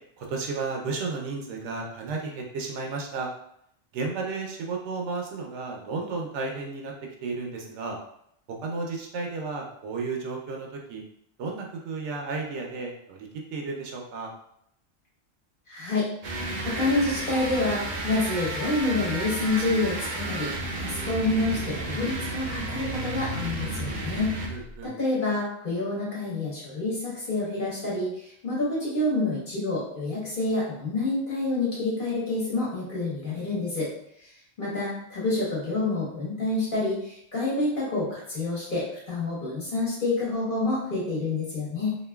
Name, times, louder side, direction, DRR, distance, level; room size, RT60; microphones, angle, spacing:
voice 1, 0.2-3.3 3.9-8.0 8.5-11.0 11.4-14.3 24.5-24.9, right 4 dB, 75° right, 0 dB, 0.9 m, -33 dB
voice 2, 15.7-16.1 16.6-20.5 20.8-24.3 24.8-33.9 34.6-42.0, left 2 dB, 50° left, -6 dB, 1.2 m, -28 dB
sound 1, 16.2-24.7, right 2 dB, 55° right, 0.5 m, -32 dB
2.9 x 2.5 x 2.2 m, 0.71 s
omnidirectional pair, 1.2 m